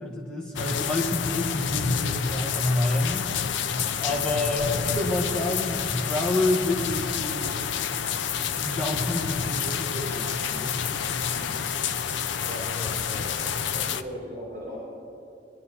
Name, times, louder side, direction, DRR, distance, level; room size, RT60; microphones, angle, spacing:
voice 1, 0.0-3.3 4.0-4.7 4.9-7.7 8.6-11.7, left 2 dB, 5° left, -2 dB, 1.1 m, -29 dB
sound 1, 0.6-14.0, left 7 dB, 85° left, 0.4 m, -29 dB
voice 2, 4.5-5.1 12.4-14.8, equal, 45° right, -6 dB, 3.1 m, -39 dB
20.0 x 11.0 x 2.8 m, 2.7 s
head